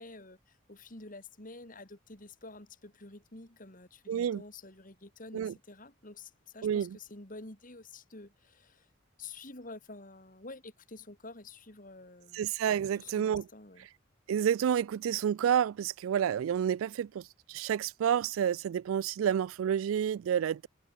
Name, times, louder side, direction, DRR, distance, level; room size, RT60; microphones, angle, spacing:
voice 1, 0.0-8.9 9.2-12.4 12.9-13.9, left 3 dB, 40° left, 3.1 m, -49 dB
voice 2, 4.1-4.4 5.3-5.5 6.6-7.0 12.3-13.5 14.3-20.7, right 9 dB, 85° right, 0.3 m, -29 dB
open air
head